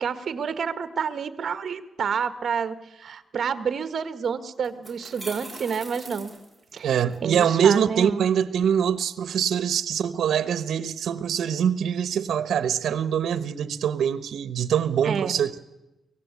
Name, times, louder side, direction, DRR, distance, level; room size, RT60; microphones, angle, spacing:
voice 1, 0.0-6.3 6.7-8.2 15.0-15.3, right 6 dB, 60° right, 12 dB, 1.5 m, -29 dB
sound 1, 4.0-4.1 4.6-7.2, right 2 dB, ahead, 4.0 m, -41 dB
voice 2, 6.8-15.6, right 8 dB, 90° right, 14 dB, 0.9 m, -24 dB
23.5 x 17.0 x 8.4 m, 0.96 s
wide cardioid pair, 135°, 0 cm